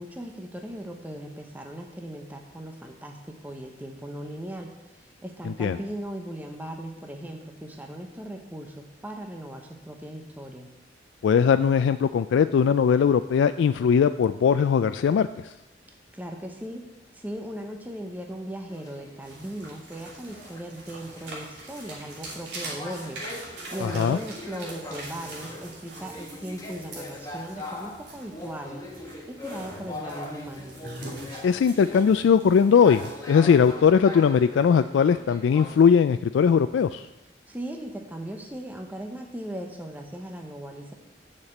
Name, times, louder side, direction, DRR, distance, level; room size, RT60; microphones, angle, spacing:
voice 1, 0.0-10.7 16.1-16.9 17.1-28.8 29.3-30.9 37.5-40.9, right 1 dB, 10° right, 3 dB, 0.8 m, -38 dB
voice 2, 5.5-5.8 11.2-15.5 23.8-24.2 31.4-37.0, left 7 dB, 85° left, 11 dB, 0.3 m, -20 dB
sound 1, 18.7-35.7, left 2 dB, 20° left, 1.2 m, -41 dB
sound 2, 19.2-33.7, right 2 dB, 70° right, 3.0 m, -43 dB
7.1 x 6.7 x 7.8 m, 0.96 s
head